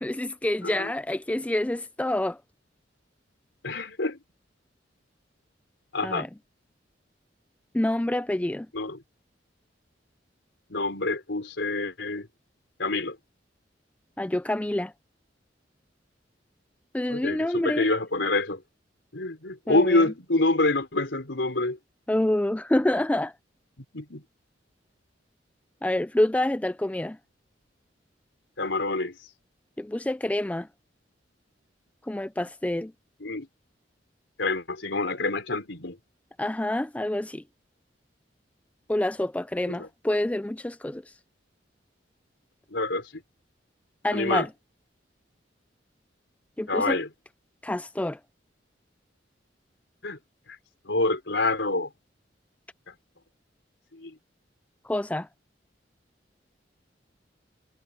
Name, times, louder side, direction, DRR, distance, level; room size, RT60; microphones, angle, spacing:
voice 1, 0.0-2.4 6.0-6.3 7.7-8.7 14.2-14.9 16.9-17.9 19.7-20.1 22.1-23.3 25.8-27.2 29.8-30.7 32.1-32.9 36.4-37.4 38.9-41.0 44.0-44.5 46.6-47.0 47.6-48.2 54.8-55.3, left 1 dB, 10° left, 0.4 m, -27 dB
voice 2, 3.6-4.2 5.9-6.3 8.7-9.0 10.7-12.3 12.8-13.2 17.1-18.6 19.1-21.8 23.9-24.2 28.6-29.2 33.2-33.5 34.4-36.0 39.7-39.9 42.7-43.2 44.1-44.5 46.7-47.1 50.0-50.2 50.9-51.9 53.9-54.1, left 2 dB, 75° left, 3.9 m, -27 dB
head